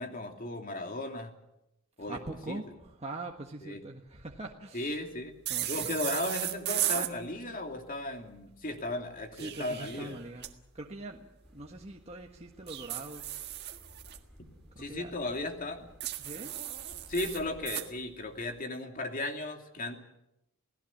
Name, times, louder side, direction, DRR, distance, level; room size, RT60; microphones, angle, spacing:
voice 1, 0.0-1.3 2.0-2.2 2.5-2.6 3.6-3.8 4.7-5.3 5.7-10.2 14.8-15.8 17.1-20.0, left 2 dB, 40° left, 4 dB, 2.8 m, -36 dB
voice 2, 2.1-5.0 5.5-5.9 9.4-10.5 10.7-13.3 14.7-15.1 16.2-16.6, right 2 dB, 30° right, 1 dB, 1.5 m, -43 dB
sound 1, 5.5-7.1 9.2-10.5 12.7-14.2 16.0-17.9, right 13 dB, 50° right, 1.6 m, -35 dB
Car passing by / Accelerating revving vroom, 11.4-17.6, equal, ahead, 4.7 m, -57 dB
28.5 x 17.5 x 7.3 m, 0.86 s
head